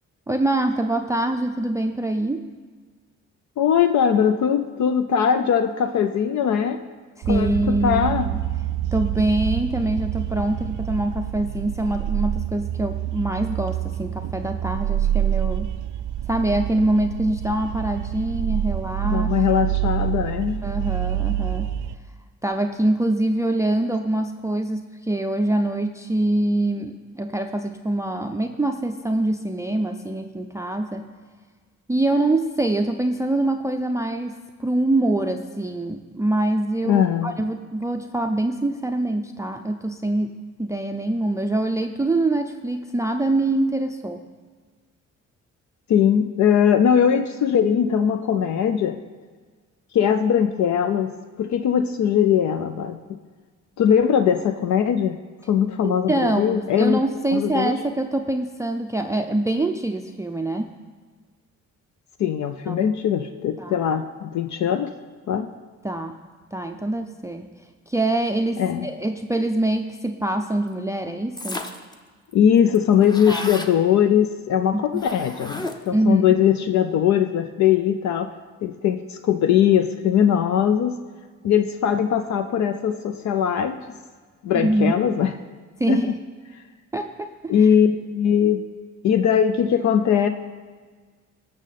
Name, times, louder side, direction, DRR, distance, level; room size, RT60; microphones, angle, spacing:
voice 1, 0.3-2.5 7.3-8.4 8.9-15.7 16.3-19.3 20.6-21.7 22.4-31.1 31.9-44.2 55.8-60.7 62.7-62.9 63.6-63.8 65.8-66.2 66.5-67.5 67.9-71.6 73.3-73.5 74.7-74.8 75.9-76.4 84.5-85.0 85.8-86.2 86.9-87.7, right 1 dB, 10° right, 6 dB, 0.4 m, -24 dB
voice 2, 3.6-6.8 7.3-8.3 19.0-20.6 36.8-37.3 45.9-49.0 49.9-51.1 51.4-53.2 53.8-55.2 55.5-57.0 57.3-57.8 62.2-64.9 65.3-65.5 68.6-68.9 72.3-78.3 78.6-81.0 81.4-83.8 84.4-85.3 85.9-86.0 86.5-86.6 87.5-88.6 89.0-90.3, left 8 dB, 70° left, 8 dB, 0.6 m, -20 dB
sound 1, 7.2-22.0, right 12 dB, 75° right, 0.5 m, -27 dB
sound 2, 71.4-71.9 72.3-72.4 72.6-73.7 75.0-76.0, left 2 dB, 15° left, 0.8 m, -33 dB
16.5 x 6.4 x 4.1 m, 1.5 s
cardioid pair, 90°, 30 cm